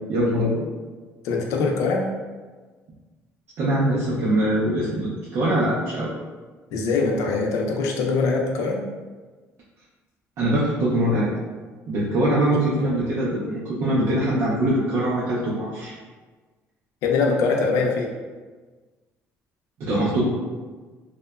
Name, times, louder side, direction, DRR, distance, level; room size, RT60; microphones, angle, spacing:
voice 1, 0.1-0.7 3.6-6.1 10.4-11.3 11.9-15.9 19.8-20.2, right 1 dB, 55° right, -8 dB, 0.4 m, -22 dB
voice 2, 1.2-2.0 6.7-8.8 12.5-12.9 17.0-18.1, left 4 dB, 85° left, 0 dB, 0.4 m, -23 dB
2.8 x 2.1 x 2.3 m, 1.4 s
cardioid pair, 170°, 5 cm